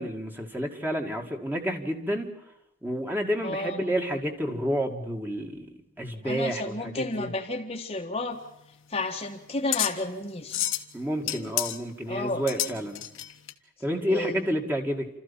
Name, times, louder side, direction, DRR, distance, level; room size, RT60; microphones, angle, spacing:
voice 1, 0.0-2.3 2.8-5.7 6.0-7.3 10.9-13.0 13.8-15.1, equal, 10° right, 3 dB, 2.4 m, -30 dB
voice 2, 3.4-3.9 6.2-8.4 8.9-10.6 11.2-11.5 12.1-12.7 14.1-14.5, left 2 dB, 30° left, 3 dB, 1.5 m, -32 dB
sound 1, 8.3-13.5, left 13 dB, 75° left, 1.5 m, -32 dB
29.0 x 14.0 x 7.2 m, 0.90 s
head